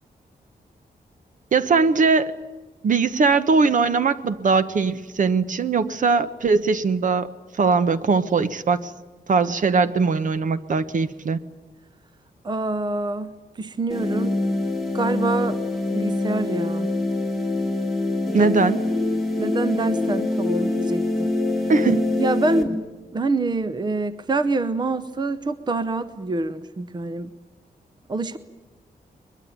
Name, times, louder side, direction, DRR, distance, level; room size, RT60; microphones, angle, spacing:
voice 1, 1.5-2.4 2.8-7.3 7.6-8.9 9.3-11.4 18.3-18.8 21.7-22.0, right 4 dB, 50° right, 13 dB, 1.1 m, -20 dB
voice 2, 12.4-14.4 14.9-15.6 15.9-16.9 18.4-18.5 19.4-21.3 22.2-22.8 23.1-27.3 28.1-28.4, right 3 dB, 25° right, 13 dB, 0.8 m, -26 dB
sound 1, 13.9-22.6, left 2 dB, ahead, 3.5 m, -24 dB
22.0 x 22.0 x 9.5 m, 1.2 s
wide cardioid pair, 160°, 16 cm